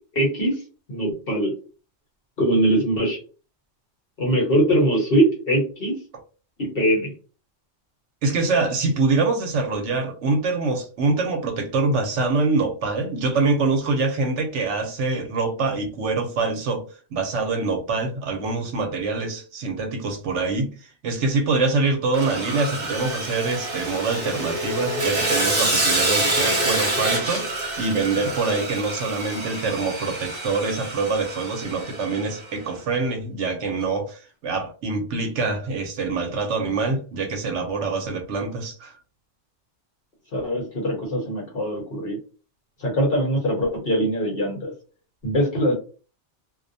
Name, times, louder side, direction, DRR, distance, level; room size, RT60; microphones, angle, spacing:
voice 1, 0.1-0.6 0.9-1.5 2.4-3.2 4.2-6.0 6.6-7.1 40.3-42.2 42.8-44.7 45.2-45.7, right 1 dB, 50° left, 1.0 m, -22 dB
voice 2, 8.2-16.8 17.1-20.7 21.0-38.9, right 3 dB, 70° right, 0.9 m, -25 dB
Sawing, 22.1-32.4, right 2 dB, 40° right, 0.8 m, -26 dB
2.4 x 2.1 x 2.5 m
omnidirectional pair, 1.3 m